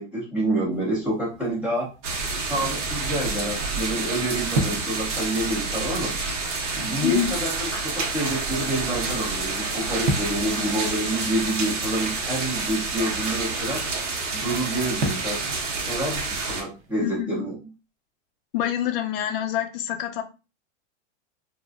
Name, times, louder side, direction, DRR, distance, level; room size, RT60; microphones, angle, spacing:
voice 1, 0.0-1.9 2.4-6.1 6.7-13.8 14.3-15.4 15.9-17.6, right 1 dB, 5° right, -8 dB, 0.5 m, -28 dB
sound 1, 0.7-17.2, right 1 dB, 45° right, 0.6 m, -37 dB
sound 2, 2.0-16.6, right 3 dB, 80° right, 1.1 m, -28 dB
voice 2, 7.0-7.3 17.0-17.4 18.5-20.2, left 11 dB, 50° left, 7 dB, 0.5 m, -26 dB
2.9 x 2.5 x 2.3 m, 0.30 s
supercardioid pair, 175°, 36 cm